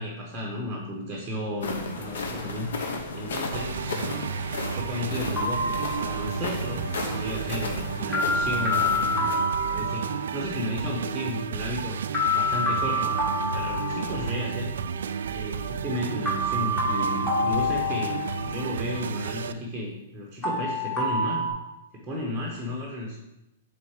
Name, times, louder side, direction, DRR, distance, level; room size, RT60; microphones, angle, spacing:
voice 1, 0.0-9.4 9.6-14.7 15.3-21.5 21.9-23.2, left 1 dB, 5° right, -2 dB, 0.8 m, -34 dB
sound 1, 1.6-9.4, left 3 dB, 70° left, 0.9 m, -34 dB
sound 2, 3.5-19.5, right 7 dB, 85° right, 0.3 m, -32 dB
sound 3, 5.4-6.5 8.1-10.4 12.1-14.5 16.3-18.6 20.4-21.5, left 1 dB, 10° left, 1.0 m, -27 dB
6.0 x 3.6 x 4.7 m, 0.91 s
hypercardioid pair, 175°, 0 cm